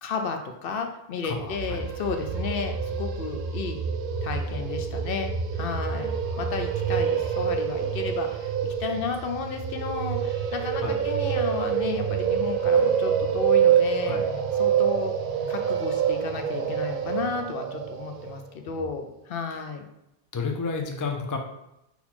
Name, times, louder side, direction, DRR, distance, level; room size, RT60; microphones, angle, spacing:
voice 1, 0.0-3.8 4.2-6.1 6.4-14.2 14.6-15.1 15.5-19.8, left 5 dB, 70° left, 5 dB, 0.7 m, -33 dB
voice 2, 1.2-1.8 5.6-6.0 8.9-9.0 10.8-11.0 14.0-14.3 18.7-18.9 19.5-19.6 20.3-21.4, left 4 dB, 30° left, 3 dB, 0.3 m, -32 dB
sound 1, 1.4-18.4, right 8 dB, 65° right, 0.7 m, -26 dB
4.3 x 2.8 x 4.2 m, 0.87 s
omnidirectional pair, 1.0 m